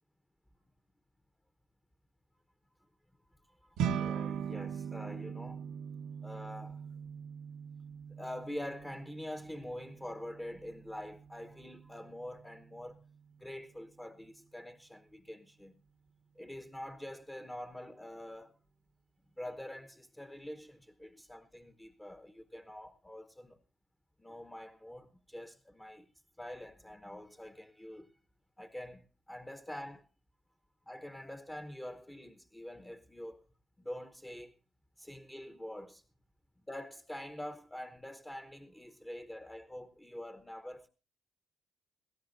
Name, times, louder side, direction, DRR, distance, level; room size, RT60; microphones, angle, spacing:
voice 1, 3.4-5.6 6.2-6.9 8.1-13.0 13.4-15.7 16.3-18.6 19.4-23.6 24.2-26.1 26.4-28.1 28.6-30.1 30.9-33.5 33.8-34.6 35.0-36.0 36.7-40.9, left 1 dB, 10° left, 1.0 m, -45 dB
sound 1, 3.8-13.2, right 8 dB, 85° right, 1.0 m, -41 dB
19.5 x 16.0 x 2.6 m
cardioid pair, 90°, 0 cm